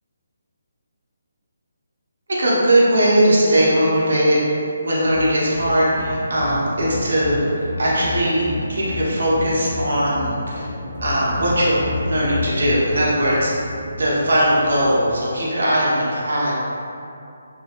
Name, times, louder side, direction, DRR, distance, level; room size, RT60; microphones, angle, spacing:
voice 1, 2.4-4.4 4.8-7.5 7.8-10.7 11.0-13.5 13.9-16.5, equal, 75° right, -6 dB, 0.9 m, -19 dB
sound 1, 5.0-15.3, left 3 dB, 50° left, 0.7 m, -31 dB
3.0 x 2.6 x 2.9 m, 2.6 s
hypercardioid pair, 165°, 0 cm